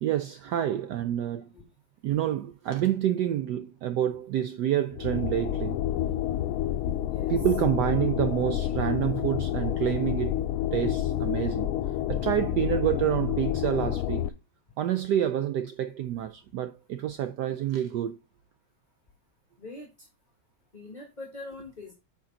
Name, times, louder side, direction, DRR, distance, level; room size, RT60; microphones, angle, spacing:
voice 1, 0.0-1.5 2.0-5.8 7.3-10.4 10.7-11.7 12.1-14.3 14.8-18.2, right 11 dB, 80° right, 0.9 m, -28 dB
sound 1, 4.9-14.3, left 12 dB, 85° left, 1.5 m, -29 dB
voice 2, 19.6-19.9 20.7-21.9, left 2 dB, 25° left, 1.6 m, -42 dB
9.1 x 5.1 x 3.8 m
omnidirectional pair, 2.3 m